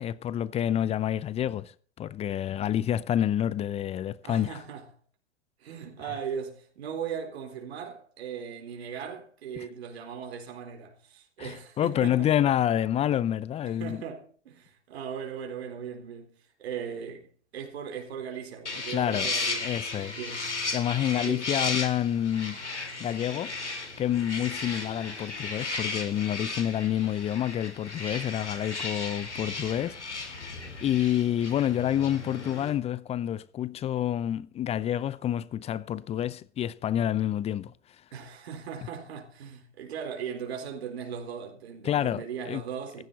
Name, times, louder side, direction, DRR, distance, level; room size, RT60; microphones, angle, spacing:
voice 1, 0.0-4.6 9.6-9.7 11.4-14.0 18.9-19.3 19.6-20.2 20.7-22.7 23.0-23.5 24.0-30.5 30.8-37.7 41.8-42.6, left 11 dB, 20° left, 0.6 m, -28 dB
voice 2, 4.2-4.8 5.6-12.3 13.6-16.3 16.6-20.4 21.2-21.4 38.1-43.0, right 7 dB, 65° right, 4.2 m, -38 dB
sound 1, 18.7-32.7, left 3 dB, 90° left, 3.8 m, -35 dB
16.0 x 14.5 x 4.2 m
figure-of-eight pair, 100°, 34 cm